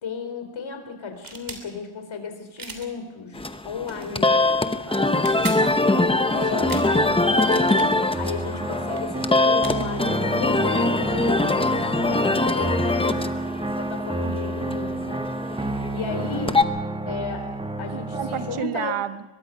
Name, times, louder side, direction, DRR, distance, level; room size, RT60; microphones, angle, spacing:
voice 1, 0.0-4.4 6.3-7.1 7.5-13.3 13.8-16.6 17.1-19.0, left 5 dB, 65° left, 6 dB, 4.2 m, -34 dB
sound 1, 1.1-1.6 2.6-2.9 3.8-4.1 5.1-5.6 6.6-6.9 7.4-7.9 8.8-9.0 9.6-9.8 11.1-11.2 11.4-12.7, right 4 dB, 40° right, 3.3 m, -38 dB
sound 2, 3.3-16.6, left 2 dB, 10° left, 0.8 m, -23 dB
voice 2, 4.9-6.9 14.2-14.4 16.2-16.5 17.9-19.2, right 10 dB, 80° right, 10 dB, 1.3 m, -33 dB
sound 3, 6.6-18.6, right 1 dB, 10° right, 1.0 m, -30 dB
23.0 x 22.0 x 5.3 m, 1.1 s
wide cardioid pair, 150°, 50 cm